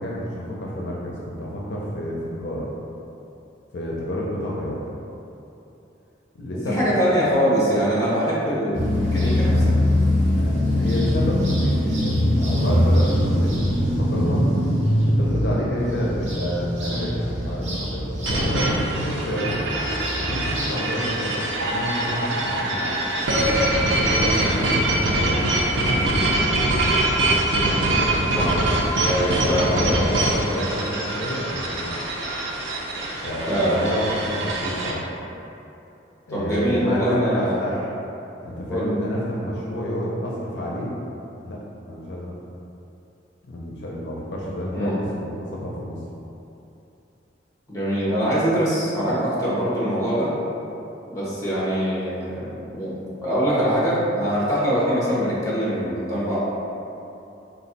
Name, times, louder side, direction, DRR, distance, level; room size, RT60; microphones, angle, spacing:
voice 1, 0.0-2.7 3.7-4.8 6.3-7.3 10.4-14.5 15.0-19.6 20.2-22.9 23.7-26.7 27.6-28.4 29.3-31.9 33.2-35.1 36.3-37.9 38.4-40.9 41.4-41.6 41.9-42.4 43.5-46.0, equal, 65° left, -4 dB, 0.5 m, -29 dB
voice 2, 6.5-9.8 28.3-28.6 29.1-29.8 33.5-34.1 36.3-37.7 38.7-39.0 44.7-45.0 47.7-50.3 51.1-56.4, equal, 15° left, -8 dB, 1.0 m, -23 dB
sound 1, 8.7-20.7, left 1 dB, 40° right, 0.8 m, -22 dB
sound 2, 18.2-34.9, right 1 dB, 85° right, 0.6 m, -23 dB
4.2 x 2.3 x 4.0 m, 2.8 s
head